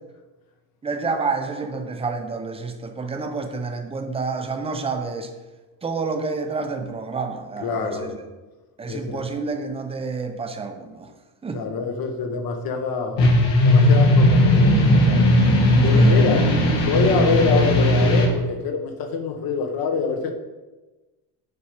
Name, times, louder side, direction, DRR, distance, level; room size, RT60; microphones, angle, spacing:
voice 1, 0.8-5.3 5.8-8.2 8.8-11.1 11.4-11.6 15.9-16.2, right 4 dB, 15° right, 5 dB, 0.6 m, -29 dB
voice 2, 7.6-8.2 8.9-9.2 11.5-13.3 13.6-15.2 15.8-16.5 16.8-20.3, left 5 dB, 55° left, 5 dB, 1.1 m, -25 dB
sound 1, 13.2-18.3, left 1 dB, 80° left, 2.3 m, -16 dB
7.1 x 5.3 x 4.8 m, 1.2 s
cardioid pair, 165°, 43 cm